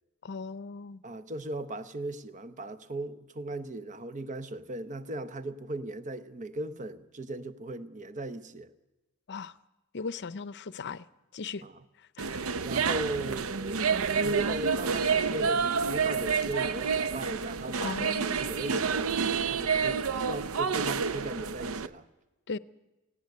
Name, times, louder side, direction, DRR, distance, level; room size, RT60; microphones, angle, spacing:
voice 1, 0.2-1.0 9.3-9.6 9.9-11.0 11.3-11.6 12.2-12.5 17.8-18.3 22.5-22.6, left 4 dB, 50° left, 0.6 m, -37 dB
voice 2, 1.0-8.7 11.6-11.7 12.6-13.9 14.2-19.2 19.5-22.0, right 2 dB, 35° right, 0.9 m, -38 dB
sound 1, 12.2-21.9, right 5 dB, 70° right, 0.7 m, -29 dB
17.5 x 16.5 x 9.5 m
head